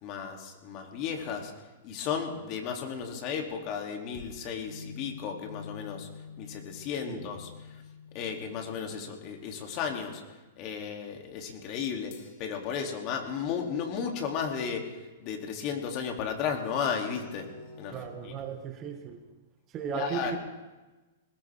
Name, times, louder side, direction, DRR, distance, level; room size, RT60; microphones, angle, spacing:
voice 1, 0.0-1.5 1.8-6.1 6.4-7.5 8.1-10.2 10.6-12.1 12.4-17.5 17.8-18.5 19.9-20.4, left 7 dB, 40° left, 2 dB, 2.9 m, -34 dB
sound 1, 4.1-10.4 12.1-14.9 17.1-18.3, left 5 dB, 55° left, 2.7 m, -49 dB
voice 2, 17.9-19.2 19.7-20.4, right 6 dB, 30° right, 6 dB, 1.9 m, -36 dB
20.5 x 19.0 x 3.6 m, 1.2 s
hypercardioid pair, 115°, 0 cm